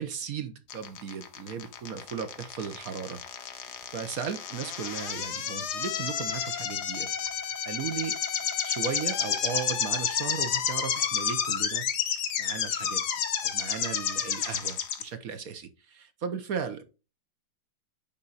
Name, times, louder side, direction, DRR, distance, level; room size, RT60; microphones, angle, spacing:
voice 1, 0.0-3.2 3.5-7.1 7.4-8.2 8.6-13.0 13.4-16.8, right 7 dB, 60° right, 9 dB, 1.2 m, -36 dB
sound 1, 0.7-15.0, left 8 dB, 65° left, 1.5 m, -30 dB
9.7 x 3.8 x 4.0 m, 0.31 s
omnidirectional pair, 2.0 m